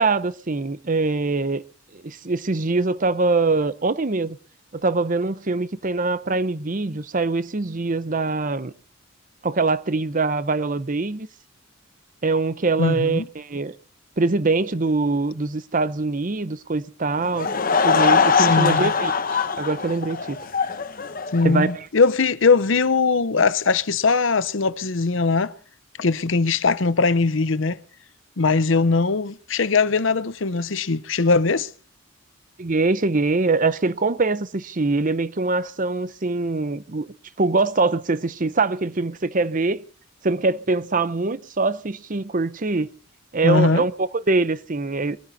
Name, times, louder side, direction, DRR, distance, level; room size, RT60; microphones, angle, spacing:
voice 1, 0.0-1.6 1.9-4.4 4.7-8.7 9.4-11.3 12.2-13.8 14.2-17.5 17.8-20.4 21.4-21.9 32.6-39.8 40.2-42.9 43.3-45.2, right 3 dB, 40° right, 0.8 m, -23 dB
voice 2, 12.8-13.2 18.4-18.9 21.3-25.5 26.0-27.8 28.4-31.7 43.4-43.8, left 4 dB, 70° left, 0.8 m, -20 dB
Laughter / Crowd, 17.2-21.8, left 5 dB, 45° left, 1.1 m, -21 dB
22.5 x 13.5 x 4.1 m
head